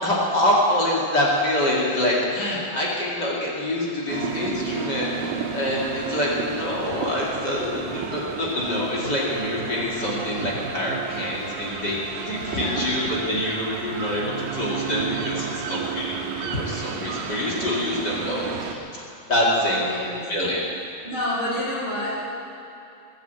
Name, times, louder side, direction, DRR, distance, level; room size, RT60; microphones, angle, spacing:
voice 1, 0.0-19.0 19.3-19.9 20.3-20.6, left 1 dB, 35° left, -5 dB, 2.5 m, -25 dB
sound 1, 4.1-18.8, right 6 dB, 80° right, 2.7 m, -32 dB
voice 2, 12.5-12.9 19.5-20.3 21.0-22.2, left 1 dB, 65° left, -5 dB, 5.8 m, -29 dB
20.0 x 8.7 x 8.1 m, 2.7 s
omnidirectional pair, 4.0 m